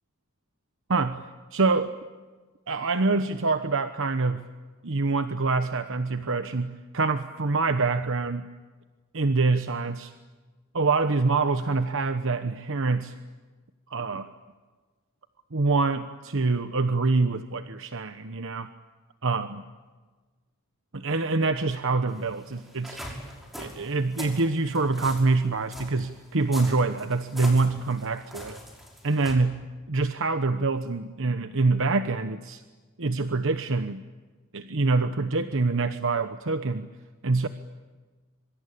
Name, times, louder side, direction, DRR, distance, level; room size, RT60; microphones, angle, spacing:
voice 1, 0.9-2.0 2.7-4.5 4.8-8.4 9.1-10.1 10.7-13.1 13.9-14.3 15.5-18.7 19.2-19.6 20.9-23.0 23.6-28.6 29.0-32.6 33.0-34.0 34.5-36.9 37.2-37.5, right 3 dB, 65° right, 9 dB, 1.1 m, -25 dB
sound 1, 22.1-29.4, equal, ahead, 5.9 m, -42 dB
26.0 x 25.0 x 8.6 m, 1.3 s
head